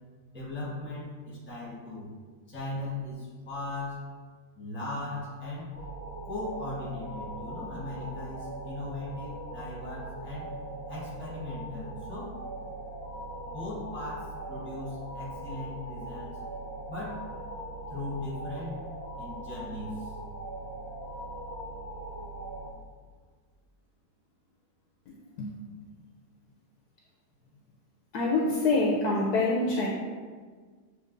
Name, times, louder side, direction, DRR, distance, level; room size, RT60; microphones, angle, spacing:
voice 1, 0.3-2.1 2.5-4.1 4.5-5.7 6.2-10.5 10.9-12.4 13.4-16.4 16.9-17.3 17.9-18.8 19.2-20.1, left 2 dB, 5° left, -7 dB, 1.1 m, -38 dB
sound 1, 5.7-22.7, right 1 dB, 55° right, 0.4 m, -40 dB
voice 2, 28.1-29.9, left 2 dB, 70° left, -2 dB, 1.0 m, -25 dB
6.9 x 2.9 x 2.5 m, 1.5 s
omnidirectional pair, 1.9 m